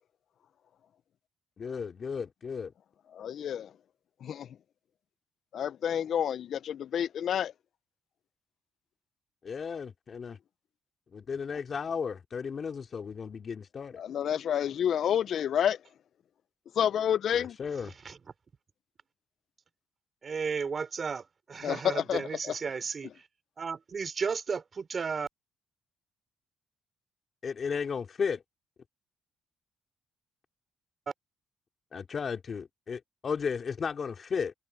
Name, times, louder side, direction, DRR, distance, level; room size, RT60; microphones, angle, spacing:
voice 1, 1.6-2.7 9.4-10.4 11.1-14.0 17.3-17.9 27.4-28.4 31.9-34.5, left 6 dB, 45° left, 3.4 m, -34 dB
voice 2, 3.1-3.7 4.2-4.5 5.5-7.5 14.0-15.8 16.8-17.6 21.6-22.5, left 9 dB, 65° left, 0.4 m, -29 dB
voice 3, 20.2-23.3 23.6-25.3, right 5 dB, 40° right, 3.7 m, -34 dB
cardioid pair, 90°, 0 cm